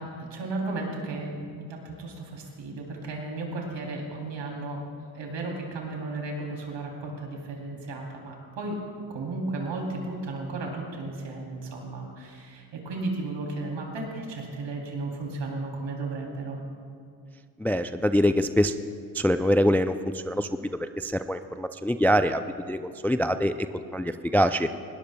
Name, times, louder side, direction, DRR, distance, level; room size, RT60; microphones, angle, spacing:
voice 1, 0.0-4.8 5.1-8.8 9.1-16.6, right 2 dB, 70° right, 0 dB, 3.3 m, -34 dB
voice 2, 17.6-18.7 19.1-23.5 23.9-24.7, equal, 5° left, 10 dB, 0.3 m, -24 dB
20.5 x 18.0 x 2.3 m, 2.3 s
supercardioid pair, 65°, 46 cm